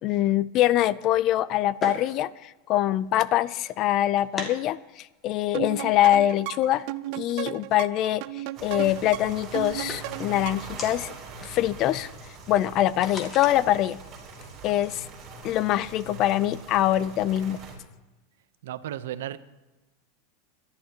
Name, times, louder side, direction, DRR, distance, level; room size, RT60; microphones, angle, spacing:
voice 1, 0.0-6.9 7.1-11.1 11.4-12.1 12.5-14.0 14.6-15.0 15.4-17.6, left 13 dB, 40° left, 19 dB, 0.4 m, -24 dB
sound 1, 1.0-13.5, left 2 dB, 20° left, 2.2 m, -43 dB
sound 2, 5.5-10.8, right 16 dB, 55° right, 0.4 m, -35 dB
sound 3, 8.5-17.7, right 3 dB, 30° right, 4.3 m, -42 dB
voice 2, 18.6-19.4, right 12 dB, 85° right, 14 dB, 0.8 m, -34 dB
23.5 x 11.5 x 2.9 m, 1.1 s
supercardioid pair, 145°, 0 cm